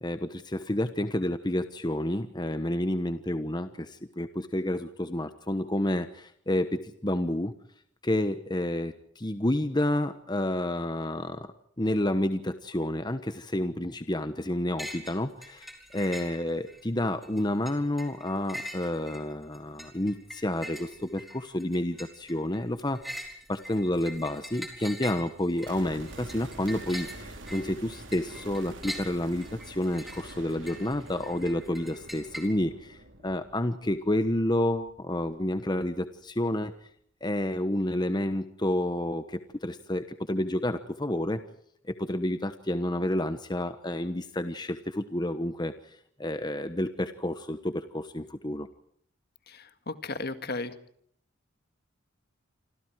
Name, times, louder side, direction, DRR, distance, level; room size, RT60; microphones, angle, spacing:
voice 1, 0.0-7.5 8.0-11.5 11.8-23.0 23.5-36.7 37.2-41.4 41.9-48.7, left 1 dB, 20° left, 9 dB, 1.1 m, -30 dB
sound 1, 14.8-15.2 15.4-16.8 17.2-32.5, equal, ahead, 4.2 m, -43 dB
sound 2, 25.7-35.7 36.0-36.1, right 2 dB, 65° right, 3.8 m, -47 dB
voice 2, 49.5-50.7, left 3 dB, 50° left, 10 dB, 1.9 m, -35 dB
28.0 x 26.0 x 4.7 m, 0.67 s
head